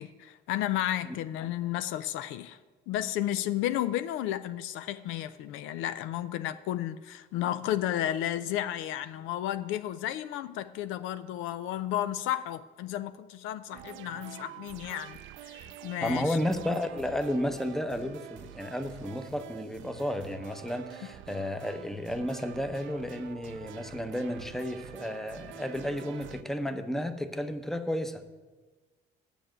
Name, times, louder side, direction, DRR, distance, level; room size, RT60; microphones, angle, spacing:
voice 1, 0.0-2.6 2.9-16.4, left 12 dB, 80° left, 13 dB, 0.4 m, -33 dB
sound 1, 13.7-26.4, right 11 dB, 75° right, 0.4 m, -47 dB
voice 2, 16.0-28.4, left 1 dB, ahead, 8 dB, 0.7 m, -32 dB
7.1 x 6.3 x 7.7 m, 1.3 s
supercardioid pair, 75°, 20 cm